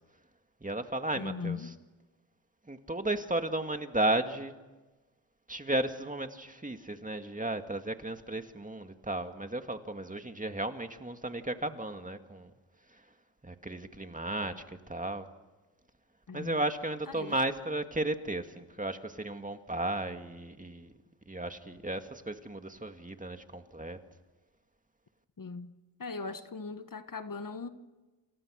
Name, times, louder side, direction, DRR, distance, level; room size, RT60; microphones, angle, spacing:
voice 1, 0.6-1.6 2.7-4.5 5.5-12.5 13.4-15.3 16.3-20.9 21.3-24.0, right 2 dB, 15° right, 2.1 m, -34 dB
voice 2, 1.1-1.7 16.3-16.6 17.1-17.4 25.4-25.7 26.0-27.7, left 4 dB, 45° left, 1.7 m, -39 dB
29.0 x 28.0 x 6.5 m
cardioid pair, 65°, 45 cm